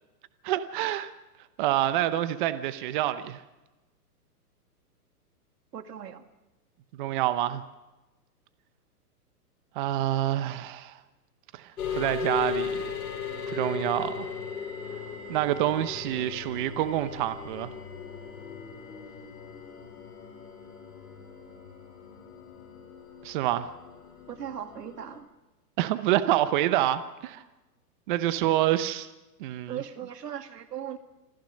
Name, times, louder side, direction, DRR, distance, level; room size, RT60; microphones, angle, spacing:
voice 1, 0.4-1.1 1.6-3.4 7.0-7.6 9.8-11.0 11.5-13.0 13.5-14.3 15.3-17.7 23.2-23.7 25.8-27.4 28.1-29.1 29.4-29.8, right 13 dB, 35° right, 0.8 m, -27 dB
voice 2, 5.7-6.2 24.3-25.3 29.7-31.0, right 9 dB, 85° right, 2.2 m, -38 dB
sound 1, 11.8-25.2, left 6 dB, 65° left, 7.6 m, -37 dB
26.5 x 15.5 x 6.4 m
hypercardioid pair, 150°, 47 cm